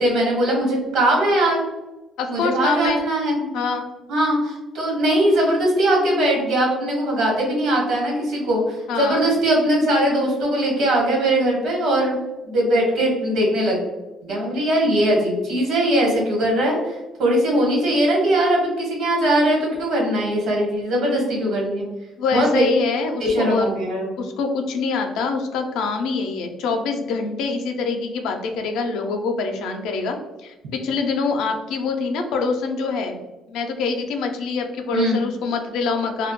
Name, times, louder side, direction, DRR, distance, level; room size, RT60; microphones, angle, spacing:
voice 1, 0.0-1.6 2.3-3.5 4.1-12.2 12.5-13.8 14.2-21.8 22.3-22.7 23.2-24.1 34.9-35.2, right 1 dB, 75° right, -2 dB, 1.1 m, -20 dB
voice 2, 2.2-3.0 3.5-3.9 8.9-9.2 22.2-23.7 24.2-30.2 30.4-33.2 33.5-36.3, left 4 dB, 80° left, 4 dB, 0.4 m, -25 dB
2.2 x 2.1 x 2.9 m, 1.1 s
cardioid pair, 95°, 0 cm